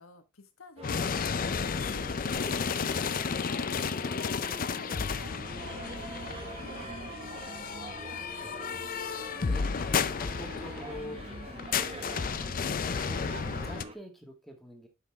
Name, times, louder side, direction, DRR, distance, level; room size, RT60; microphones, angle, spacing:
voice 1, 0.0-2.8 3.3-8.4, left 2 dB, 90° left, 1.4 m, -53 dB
sound 1, 0.8-13.8, left 6 dB, 45° left, 0.5 m, -33 dB
sound 2, 0.8-13.9, right 2 dB, 30° right, 1.1 m, -44 dB
sound 3, 5.6-10.9, right 3 dB, 55° right, 3.3 m, -48 dB
voice 2, 9.3-9.8 10.1-13.3 13.6-14.9, left 1 dB, ahead, 1.8 m, -46 dB
8.1 x 5.8 x 3.4 m
head